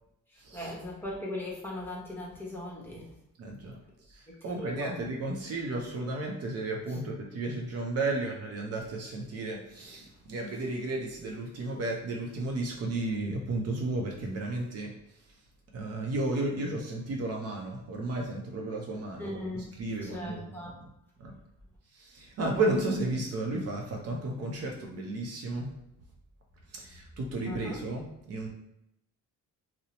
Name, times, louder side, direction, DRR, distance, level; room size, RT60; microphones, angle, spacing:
voice 1, 0.5-3.0 4.4-5.0 19.2-19.6 20.0-20.8 27.4-27.8, left 1 dB, 5° left, -5 dB, 0.8 m, -38 dB
voice 2, 3.4-3.8 4.1-14.9 15.7-20.5 21.2-21.3 22.0-25.7 26.7-28.5, right 2 dB, 55° right, 0 dB, 0.5 m, -33 dB
2.7 x 2.0 x 2.8 m, 0.82 s
cardioid pair, 90°, 30 cm